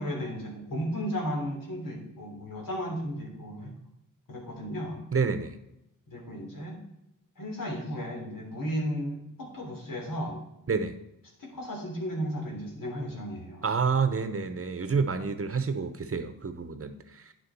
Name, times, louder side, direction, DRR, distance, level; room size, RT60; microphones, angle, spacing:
voice 1, 0.0-3.7 4.3-5.0 6.1-6.8 7.4-10.4 11.4-13.7, equal, 80° left, -1 dB, 3.3 m, -34 dB
voice 2, 5.1-5.6 10.7-10.9 13.6-17.3, right 5 dB, 45° right, 10 dB, 0.8 m, -29 dB
10.0 x 6.8 x 4.6 m, 0.84 s
wide cardioid pair, 135°, 33 cm